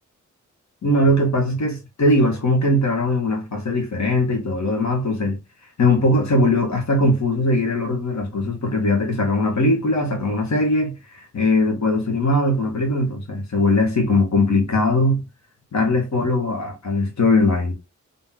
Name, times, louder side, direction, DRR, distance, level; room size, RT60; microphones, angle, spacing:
voice 1, 0.8-5.4 5.8-15.2 15.7-17.7, left 2 dB, 60° left, 1.9 m, -20 dB
3.8 x 3.8 x 2.9 m
cardioid pair, 60°, 31 cm